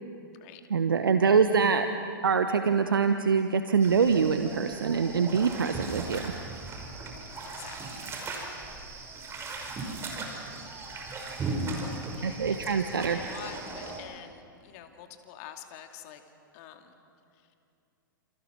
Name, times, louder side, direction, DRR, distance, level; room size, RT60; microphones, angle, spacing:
voice 1, 0.7-1.9 2.2-6.3 12.2-13.2, right 6 dB, 80° right, 8 dB, 1.1 m, -24 dB
sound 1, 3.8-14.0, right 3 dB, 20° right, 5.5 m, -38 dB
voice 2, 7.4-8.2 12.1-16.2 16.5-17.0 17.3-17.4, left 10 dB, 45° left, 5 dB, 2.5 m, -47 dB
29.5 x 28.5 x 6.1 m, 2.5 s
figure-of-eight pair, 105°, 11 cm